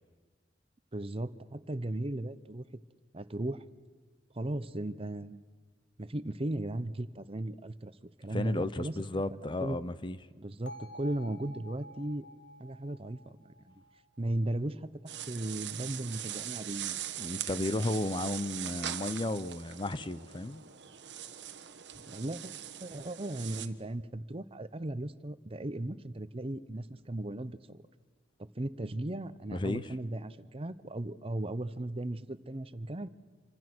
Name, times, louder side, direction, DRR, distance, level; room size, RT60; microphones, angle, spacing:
voice 1, 0.9-2.6 3.1-3.6 4.3-5.4 6.0-7.9 8.2-8.9 9.4-9.8 10.3-12.3 12.6-13.8 14.2-17.0 22.1-22.5 22.8-27.8 28.4-33.1, right 1 dB, 30° right, 0.8 m, -36 dB
voice 2, 8.3-10.2 17.2-20.6 29.5-29.9, left 2 dB, 25° left, 0.7 m, -33 dB
Bell, 10.7-14.7, left 1 dB, 70° left, 2.0 m, -51 dB
sound 1, 15.1-23.7, right 11 dB, 70° right, 1.2 m, -41 dB
28.0 x 25.0 x 6.2 m
head